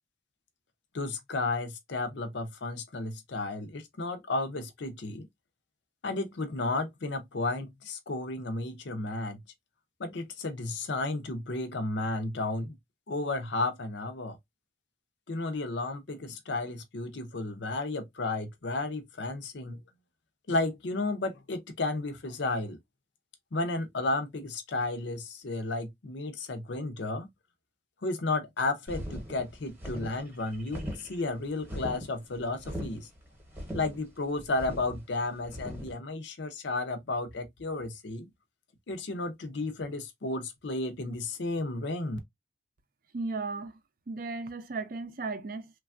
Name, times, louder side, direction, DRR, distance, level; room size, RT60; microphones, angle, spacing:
voice 1, 0.9-5.3 6.0-9.4 10.0-12.7 13.1-14.4 15.3-19.8 20.5-22.8 23.5-27.3 28.0-33.1 33.7-38.3 38.9-42.2, left 2 dB, 70° left, 0.6 m, -33 dB
sound 1, 28.9-35.9, equal, 10° right, 0.9 m, -40 dB
voice 2, 43.1-43.7 44.1-45.7, right 3 dB, 45° right, 0.4 m, -35 dB
3.2 x 2.3 x 2.4 m
head